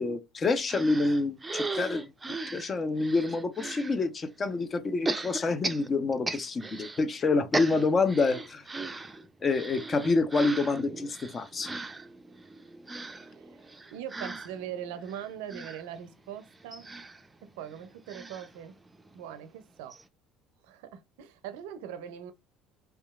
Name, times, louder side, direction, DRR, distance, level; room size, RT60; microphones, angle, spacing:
voice 1, 0.0-2.1 2.5-8.6 9.4-11.7, left 3 dB, 35° left, 0.5 m, -27 dB
sound 1, 0.7-4.0 5.0-7.0 7.3-19.2 19.6-19.7 19.9-20.0, right 3 dB, 20° right, 0.4 m, -38 dB
voice 2, 13.1-16.9 17.4-18.7 19.1-20.0 20.6-22.3, right 9 dB, 80° right, 0.4 m, -41 dB
2.8 x 2.3 x 2.3 m
hypercardioid pair, 75°, 0 cm